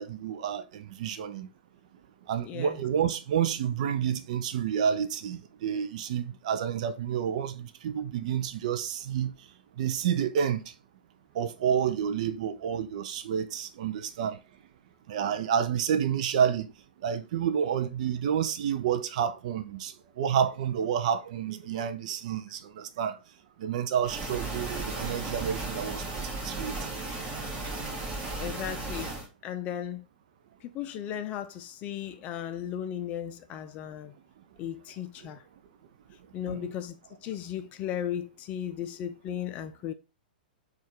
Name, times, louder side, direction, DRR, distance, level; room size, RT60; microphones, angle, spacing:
voice 1, 0.0-1.5 2.3-9.3 9.8-10.6 11.4-14.4 15.1-16.7 17.0-23.2 23.6-26.0 26.4-26.8 36.5-36.7, right 8 dB, 45° right, 0.4 m, -29 dB
voice 2, 2.5-2.8 28.4-29.1 29.4-30.1 30.7-34.1 34.6-35.4 36.3-37.0 37.2-39.9, left 10 dB, 30° left, 0.4 m, -35 dB
sound 1, 24.0-29.3, right 3 dB, 25° right, 1.4 m, -35 dB
4.2 x 2.4 x 4.5 m
figure-of-eight pair, 105°, 5 cm